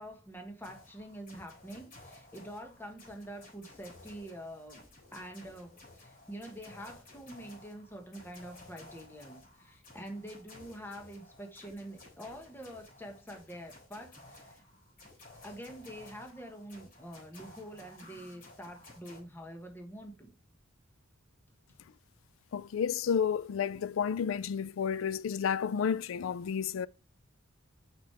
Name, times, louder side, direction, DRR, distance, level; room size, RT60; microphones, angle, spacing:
voice 1, 0.0-4.8 5.1-14.6 15.3-20.3, equal, 10° left, 1.3 m, -46 dB
sound 1, 0.6-19.2, left 2 dB, 45° left, 3.9 m, -55 dB
voice 2, 22.5-26.9, left 7 dB, 80° left, 0.4 m, -31 dB
6.1 x 6.1 x 3.3 m
head